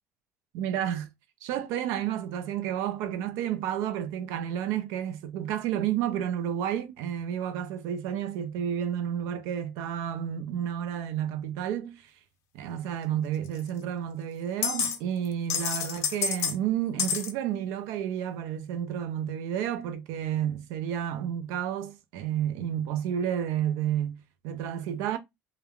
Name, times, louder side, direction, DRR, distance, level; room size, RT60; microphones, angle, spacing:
voice 1, 0.5-1.1 1.4-12.1 12.5-25.2, right 10 dB, 85° right, 0.5 m, -31 dB
sound 1, 13.6-13.7 14.6-15.0 15.2-16.6 17.0-17.3, left 7 dB, 70° left, 0.5 m, -28 dB
3.3 x 2.2 x 2.3 m
cardioid pair, 155°, 5 cm